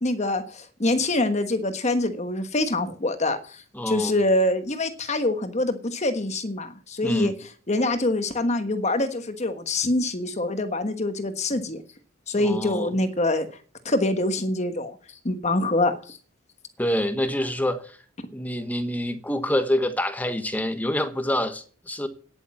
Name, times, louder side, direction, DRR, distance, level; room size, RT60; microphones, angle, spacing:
voice 1, 0.0-3.6 3.9-7.3 7.7-11.8 12.3-13.5 13.8-14.9 15.2-16.2, left 2 dB, 35° left, 1.3 m, -25 dB
voice 2, 3.7-4.2 7.0-7.4 12.3-12.9 16.8-18.0 18.3-22.1, left 1 dB, 10° left, 1.2 m, -26 dB
10.0 x 8.6 x 7.2 m
head